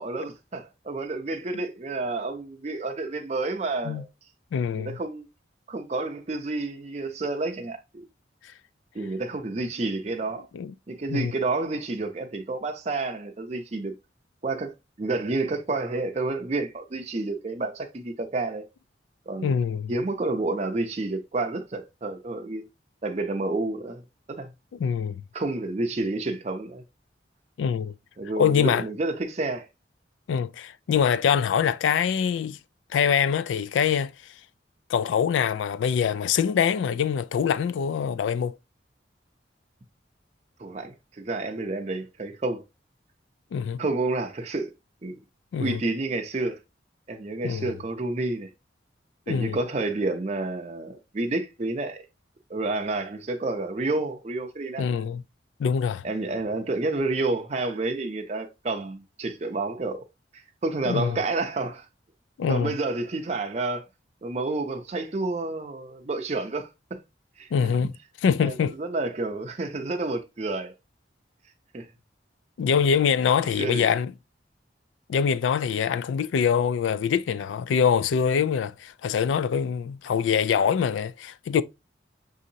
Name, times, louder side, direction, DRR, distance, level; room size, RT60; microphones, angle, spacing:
voice 1, 0.0-4.1 4.8-5.3 5.7-8.0 8.9-10.5 10.9-13.9 14.4-18.6 19.3-19.5 19.9-22.6 23.0-24.0 24.3-24.5 25.3-26.8 28.2-29.7 40.6-42.6 43.8-44.7 45.0-45.2 45.6-46.6 47.1-48.5 49.3-52.0 52.5-55.0 56.0-60.0 60.3-61.8 62.5-63.9 64.2-67.0 67.4-67.5 68.4-70.7 71.7-71.9 73.6-73.9, right 2 dB, 35° right, 0.5 m, -29 dB
voice 2, 4.5-5.0 10.5-10.7 11.1-11.3 19.4-19.9 24.8-25.2 27.6-27.9 28.4-28.9 30.3-32.6 32.9-34.1 34.9-38.6 43.5-43.8 45.5-45.8 47.4-47.7 49.3-49.6 54.8-55.2 55.6-56.0 60.9-61.2 62.4-62.7 67.5-67.9 68.2-68.8 72.6-74.1 75.1-81.6, left 7 dB, 85° left, 0.3 m, -24 dB
6.2 x 2.8 x 2.6 m
head